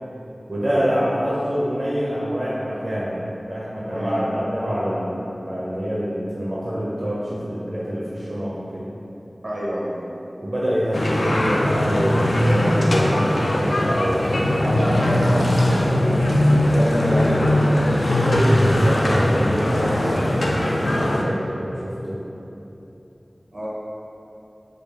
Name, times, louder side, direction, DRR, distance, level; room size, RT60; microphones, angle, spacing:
voice 1, 0.5-3.1 3.5-8.8 10.4-16.3 16.7-17.3 18.2-22.2, equal, 55° right, -8 dB, 0.5 m, -26 dB
voice 2, 9.4-10.0 17.1-17.5 23.5-23.7, equal, 80° right, -7 dB, 0.8 m, -29 dB
sound 1, 10.9-21.2, left 1 dB, 90° left, 0.3 m, -20 dB
3.2 x 2.3 x 3.5 m, 2.9 s
wide cardioid pair, 45°, 0 cm